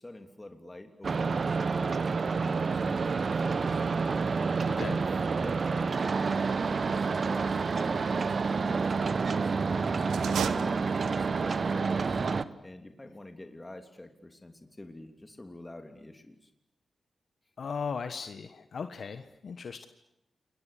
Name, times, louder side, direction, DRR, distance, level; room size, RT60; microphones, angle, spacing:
voice 1, 0.0-3.8 4.9-5.1 5.4-12.2 12.6-16.5, left 1 dB, 25° left, 5 dB, 3.1 m, -48 dB
sound 1, 1.0-12.4, right 4 dB, 60° right, 1.2 m, -28 dB
voice 2, 4.7-5.0 17.6-19.9, left 5 dB, 70° left, 9 dB, 1.2 m, -37 dB
sound 2, 10.0-11.4, right 8 dB, 90° right, 1.1 m, -35 dB
29.0 x 21.5 x 8.5 m, 0.85 s
cardioid pair, 45°, 0 cm